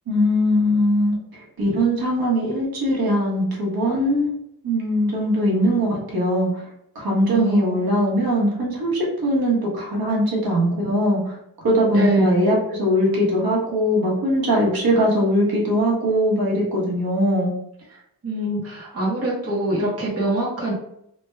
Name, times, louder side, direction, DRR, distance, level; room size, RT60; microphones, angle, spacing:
voice 1, 0.1-4.3 4.6-6.6 6.9-11.4 11.6-17.5, equal, 65° right, -4 dB, 1.0 m, -21 dB
voice 2, 7.3-7.9 11.9-12.5 18.2-20.7, right 1 dB, 40° right, -5 dB, 0.8 m, -24 dB
3.2 x 2.2 x 3.2 m, 0.76 s
wide cardioid pair, 170°, 39 cm